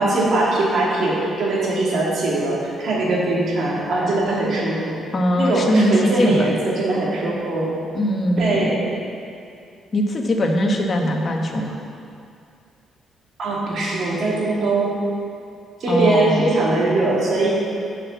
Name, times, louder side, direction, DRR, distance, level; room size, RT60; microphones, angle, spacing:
voice 1, 0.0-5.0 5.4-7.7 8.4-8.8 13.4-15.0 15.8-17.5, right 2 dB, 60° right, -5 dB, 2.6 m, -21 dB
voice 2, 5.1-6.5 7.9-8.8 9.9-11.8 15.9-16.5, equal, 40° left, 1 dB, 1.3 m, -20 dB
7.7 x 6.2 x 7.2 m, 2.5 s
cardioid pair, 90°, 0 cm